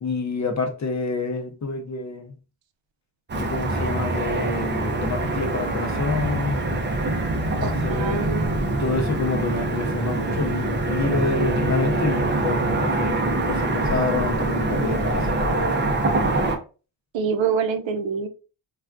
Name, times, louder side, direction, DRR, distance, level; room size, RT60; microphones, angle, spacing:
voice 1, 0.0-2.4 3.4-6.6 7.6-8.3 8.8-16.0, left 3 dB, 40° left, 0.5 m, -28 dB
Car passing by / Traffic noise roadway noise, 3.3-16.6, right 2 dB, 25° right, 0.4 m, -24 dB
voice 2, 7.9-8.7 17.1-18.3, right 6 dB, 75° right, 0.6 m, -25 dB
3.4 x 2.3 x 2.4 m
wide cardioid pair, 170°, 47 cm